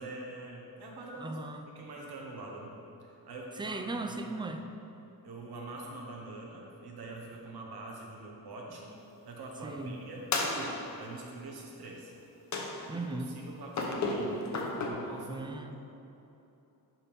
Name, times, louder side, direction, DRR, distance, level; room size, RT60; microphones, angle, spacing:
voice 1, 0.0-1.4 1.7-4.4 5.2-8.9 9.2-12.1 12.6-13.2 13.4-14.4 14.8-15.5, right 2 dB, 85° right, -1 dB, 1.2 m, -44 dB
voice 2, 1.2-1.6 3.6-4.6 9.6-10.0 12.9-13.3 15.3-15.8, right 2 dB, 15° right, 5 dB, 0.3 m, -37 dB
sound 1, 10.3-11.1 12.5-13.1 13.7-14.9, left 2 dB, 50° left, 0.9 m, -33 dB
11.0 x 4.4 x 3.5 m, 2.9 s
wide cardioid pair, 145°, 37 cm